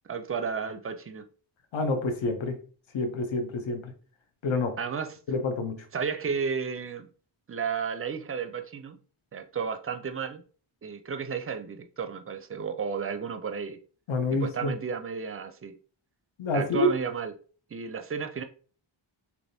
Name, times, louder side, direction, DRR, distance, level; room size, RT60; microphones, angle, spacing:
voice 1, 0.1-1.3 4.8-5.2 5.9-7.1 7.5-9.0 9.3-10.4 10.8-13.8 14.3-15.8 16.5-17.3 17.7-18.4, right 6 dB, 30° right, 0.4 m, -33 dB
voice 2, 1.7-2.6 2.9-3.9 4.4-4.8 5.3-5.8 14.1-14.7 16.4-16.9, left 2 dB, 70° left, 0.8 m, -27 dB
3.3 x 2.8 x 2.7 m
wide cardioid pair, 70°, 48 cm